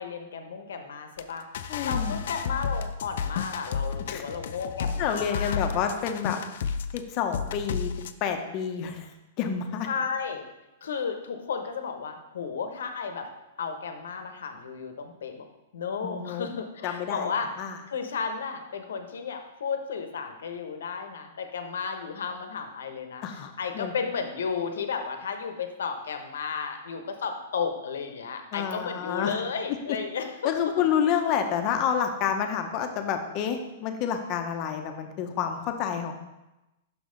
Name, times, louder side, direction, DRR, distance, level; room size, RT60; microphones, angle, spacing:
voice 1, 0.0-5.6 9.8-10.4 10.8-13.3 13.6-15.4 15.7-17.5 17.9-30.7, left 5 dB, 85° left, 6 dB, 0.9 m, -33 dB
sound 1, 1.2-1.3 1.5-7.0 7.3-8.1, left 6 dB, 70° left, 0.4 m, -32 dB
voice 2, 1.7-2.1 4.1-4.2 5.0-6.4 6.9-7.9 8.2-9.1 9.4-9.9 16.0-16.5 16.8-17.3 17.6-17.8 23.2-23.9 28.5-29.4 30.4-36.1, left 8 dB, 40° left, 6 dB, 0.7 m, -29 dB
6.0 x 5.3 x 3.8 m, 0.98 s
hypercardioid pair, 145°, 0 cm